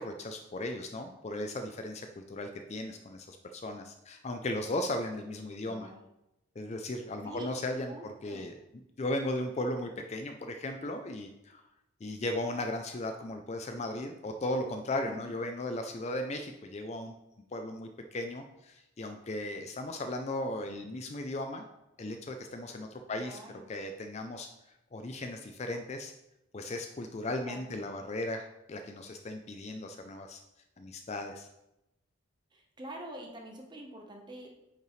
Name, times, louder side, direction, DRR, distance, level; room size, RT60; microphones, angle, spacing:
voice 1, 0.0-5.9 6.6-8.5 9.0-11.6 12.0-17.1 17.5-21.7 22.0-23.4 23.7-24.5 24.9-26.1 26.5-30.4 30.8-31.5, left 1 dB, 30° left, 5 dB, 0.4 m, -36 dB
voice 2, 5.6-6.1 7.2-7.5 7.9-8.5 15.1-15.3 23.1-23.7 27.4-27.9 32.5-34.5, equal, 20° right, 1 dB, 1.0 m, -46 dB
8.8 x 5.4 x 3.2 m, 0.91 s
head